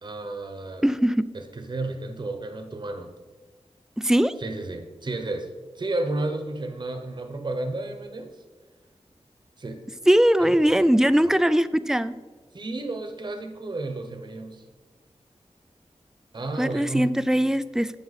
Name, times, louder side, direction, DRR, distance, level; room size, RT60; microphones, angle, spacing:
voice 1, 0.0-0.8 1.3-3.1 4.4-8.3 9.6-9.8 10.4-10.9 11.2-11.3 12.5-14.6 16.3-17.2, right 2 dB, 45° right, 6 dB, 1.0 m, -32 dB
voice 2, 0.8-1.3 4.0-4.3 10.1-12.1 16.6-18.0, equal, 5° right, 14 dB, 0.4 m, -20 dB
11.5 x 8.5 x 4.2 m, 1.4 s
wide cardioid pair, 110°, 11 cm